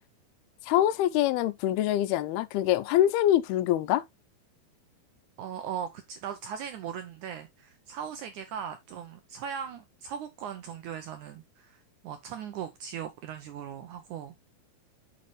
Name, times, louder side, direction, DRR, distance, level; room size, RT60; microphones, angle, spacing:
voice 1, 0.7-4.0, left 12 dB, 90° left, 2.6 m, -24 dB
voice 2, 5.4-14.4, right 8 dB, 80° right, 1.8 m, -39 dB
6.8 x 6.8 x 3.1 m
omnidirectional pair, 4.4 m